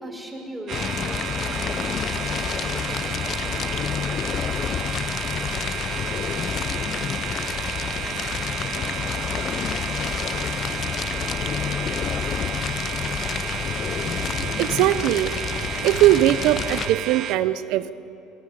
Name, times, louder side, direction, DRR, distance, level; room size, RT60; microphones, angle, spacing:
voice 1, 0.0-4.5, right 1 dB, 5° right, 0 dB, 4.9 m, -40 dB
Fire, 0.7-16.9, left 8 dB, 45° left, 0.6 m, -29 dB
sound 1, 0.7-17.4, right 9 dB, 50° right, 1.3 m, -32 dB
voice 2, 14.4-15.3 15.8-17.9, right 14 dB, 70° right, 14 dB, 0.8 m, -20 dB
27.0 x 23.0 x 5.0 m, 2.9 s
supercardioid pair, 105°, 0 cm